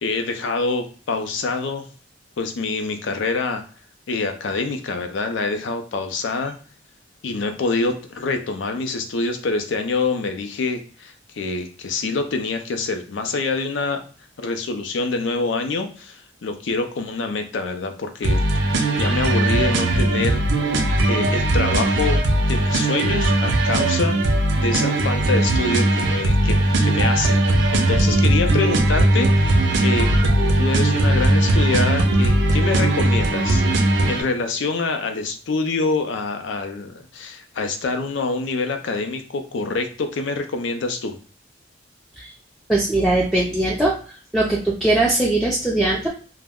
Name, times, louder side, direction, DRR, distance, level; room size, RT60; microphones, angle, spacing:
voice 1, 0.0-1.9 2.4-3.6 4.1-6.6 7.2-14.0 14.4-20.4 21.1-27.4 27.7-33.6 34.1-41.2, left 3 dB, 75° left, 6 dB, 0.4 m, -26 dB
sound 1, 18.2-34.2, right 1 dB, 70° right, 0.4 m, -19 dB
voice 2, 42.7-46.1, right 2 dB, ahead, -4 dB, 0.3 m, -20 dB
2.2 x 2.0 x 3.4 m, 0.41 s
head